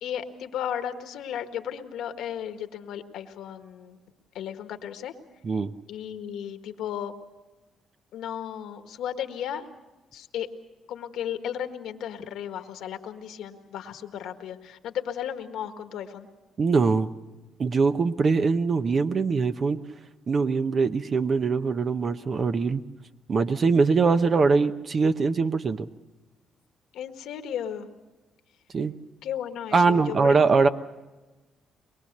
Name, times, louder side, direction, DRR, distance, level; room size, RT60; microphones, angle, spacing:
voice 1, 0.0-4.0 4.3-5.1 5.9-7.1 8.1-9.7 10.1-10.5 10.9-16.3 26.9-27.9 29.2-30.7, left 9 dB, 85° left, 7 dB, 1.5 m, -34 dB
voice 2, 16.6-17.1 17.6-19.8 20.3-22.8 23.3-25.9 28.7-28.9 29.7-30.7, right 4 dB, 45° right, 9 dB, 0.8 m, -22 dB
23.0 x 21.5 x 6.7 m, 1.1 s
cardioid pair, 90°, 0 cm